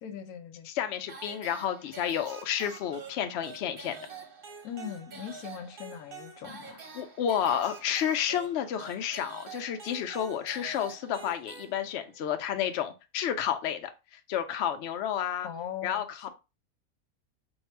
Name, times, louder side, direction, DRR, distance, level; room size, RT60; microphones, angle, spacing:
voice 1, 0.0-0.7 4.6-6.8 15.4-16.3, left 8 dB, 85° left, 1.1 m, -40 dB
voice 2, 0.7-4.0 6.9-13.9 14.3-15.5 15.8-16.3, left 9 dB, 65° left, 0.7 m, -31 dB
sound 1, 1.1-12.2, right 5 dB, 45° right, 0.8 m, -46 dB
3.6 x 2.3 x 4.5 m
omnidirectional pair, 1.5 m